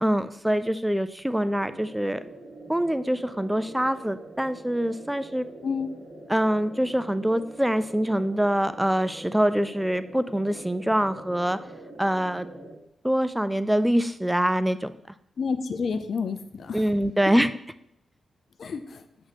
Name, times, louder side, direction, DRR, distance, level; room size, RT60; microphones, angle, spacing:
voice 1, 0.0-2.2 2.7-5.5 6.3-11.6 12.0-12.5 13.0-14.9 16.7-17.5, equal, 5° right, 13 dB, 0.4 m, -24 dB
sound 1, 1.4-12.8, right 1 dB, 50° right, 1.5 m, -44 dB
voice 2, 15.4-16.8 18.6-19.0, left 5 dB, 65° left, 9 dB, 0.5 m, -29 dB
7.7 x 3.1 x 4.1 m, 0.76 s
cardioid pair, 60°, 0 cm